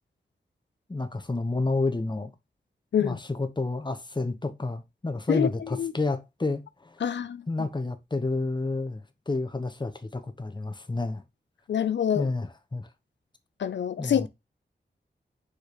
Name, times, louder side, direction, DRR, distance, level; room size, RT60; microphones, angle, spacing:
voice 1, 0.9-2.3 3.0-7.0 7.5-11.2 12.1-12.9 14.0-14.3, left 3 dB, 25° left, 1.1 m, -30 dB
voice 2, 5.3-5.9 7.0-7.4 11.7-12.3 13.6-14.3, left 9 dB, 90° left, 0.4 m, -26 dB
6.3 x 5.1 x 3.0 m
wide cardioid pair, 90°, 18 cm